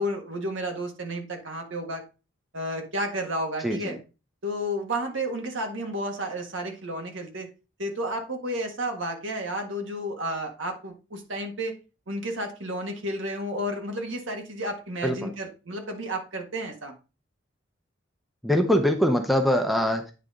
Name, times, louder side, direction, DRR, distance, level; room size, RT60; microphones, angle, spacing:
voice 1, 0.0-2.0 2.5-4.0 4.4-7.5 7.8-11.7 12.1-16.9, equal, 70° right, 4 dB, 1.6 m, -32 dB
voice 2, 3.6-4.0 15.0-15.3 18.4-20.1, equal, ahead, 5 dB, 0.7 m, -23 dB
9.3 x 4.1 x 3.7 m, 0.31 s
head